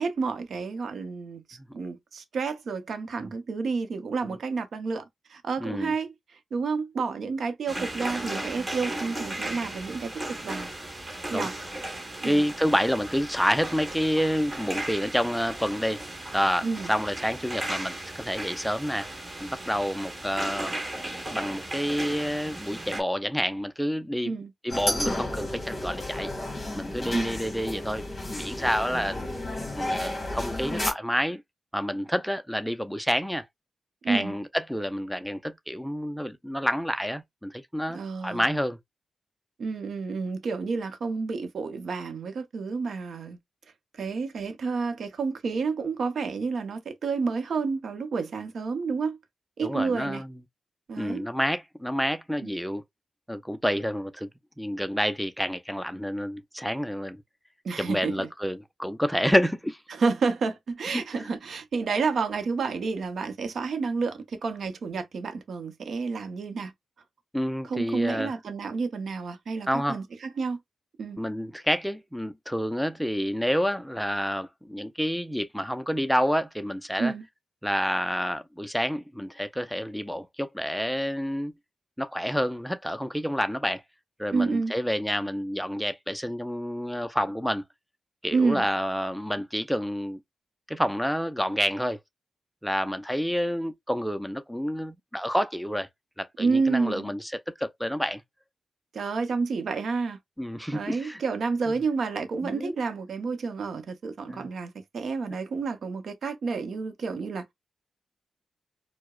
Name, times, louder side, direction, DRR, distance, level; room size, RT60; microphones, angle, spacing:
voice 1, 0.0-10.7 11.3-11.6 12.2-12.4 16.6-16.9 24.2-24.5 27.1-27.3 34.0-34.3 37.9-38.4 39.6-43.4 44.0-49.2 49.6-50.2 50.9-51.3 52.4-52.5 57.6-58.3 59.9-66.7 67.6-70.6 71.0-71.2 77.0-77.2 84.3-84.7 88.3-88.7 96.4-97.1 98.9-100.2 100.7-107.5, right 4 dB, 75° right, 0.7 m, -30 dB
voice 2, 5.6-5.9 11.3-11.5 12.2-16.0 16.3-19.1 19.4-20.7 21.3-24.3 24.6-26.3 26.7-29.2 29.8-31.4 31.7-33.4 34.1-38.8 49.6-50.3 51.0-52.8 53.3-54.3 54.6-57.2 57.8-59.8 60.9-61.4 67.3-68.3 69.7-70.0 71.2-77.1 77.6-81.5 82.0-83.8 84.2-87.6 88.2-90.2 90.7-92.0 92.6-95.9 96.2-97.3 97.6-98.2 100.4-101.2 102.4-102.7 104.3-104.5, equal, ahead, 0.5 m, -28 dB
sound 1, 7.7-23.0, right 1 dB, 20° right, 1.3 m, -36 dB
sound 2, 24.7-30.9, left 1 dB, 30° left, 1.6 m, -32 dB
4.6 x 2.1 x 2.3 m
wide cardioid pair, 120°, 0 cm